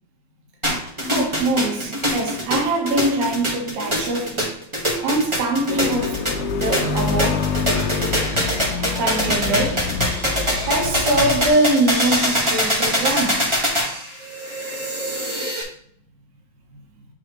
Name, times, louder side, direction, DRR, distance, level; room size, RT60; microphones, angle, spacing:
sound 1, 0.6-15.6, equal, 25° right, 0.6 m, -23 dB
voice 1, 1.1-4.5 5.0-6.3 6.6-7.6 9.0-10.0 10.6-13.6, right 2 dB, 75° right, 2.7 m, -23 dB
sound 2, 5.7-11.5, left 5 dB, 75° left, 1.9 m, -26 dB
8.9 x 4.0 x 3.1 m
omnidirectional pair, 3.4 m